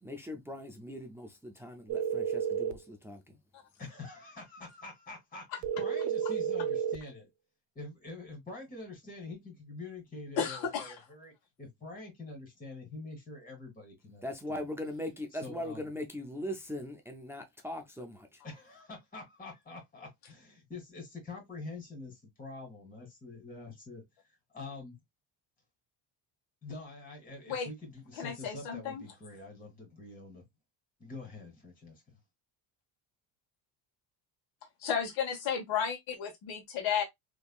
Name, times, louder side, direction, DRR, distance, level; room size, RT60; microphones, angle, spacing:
voice 1, 0.0-3.4 14.2-18.4, left 1 dB, 5° right, 0.3 m, -40 dB
sound 1, 1.9-2.8 5.6-7.0, right 9 dB, 80° right, 0.7 m, -31 dB
voice 2, 3.8-7.3 7.8-11.3 11.6-14.6 15.4-15.8 18.4-24.0 24.5-25.0 26.6-30.4 31.0-32.2, left 3 dB, 20° left, 1.9 m, -46 dB
voice 3, 10.4-10.9 27.5-27.7 28.2-29.0 34.8-37.0, left 7 dB, 75° left, 1.6 m, -33 dB
3.5 x 3.0 x 2.3 m
cardioid pair, 155°, 46 cm